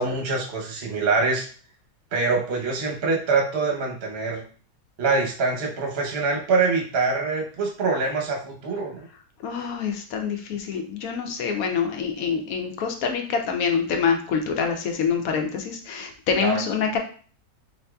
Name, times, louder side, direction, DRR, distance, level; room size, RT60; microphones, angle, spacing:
voice 1, 0.0-1.5 2.1-4.4 5.0-9.1 16.4-16.6, right 4 dB, 50° right, 0 dB, 0.8 m, -24 dB
voice 2, 9.4-17.0, left 6 dB, 70° left, 3 dB, 0.9 m, -26 dB
4.0 x 2.6 x 2.2 m, 0.42 s
omnidirectional pair, 1.7 m